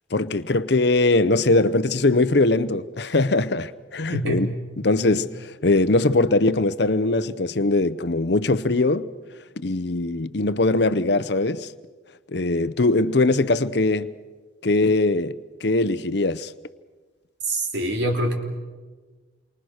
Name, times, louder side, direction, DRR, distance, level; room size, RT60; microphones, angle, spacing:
voice 1, 0.1-9.1 9.6-11.7 12.3-14.1 14.6-16.5, left 2 dB, 60° left, 0.8 m, -21 dB
voice 2, 4.1-4.4 17.5-18.3, right 1 dB, 60° right, 3.2 m, -24 dB
28.5 x 24.0 x 6.5 m
head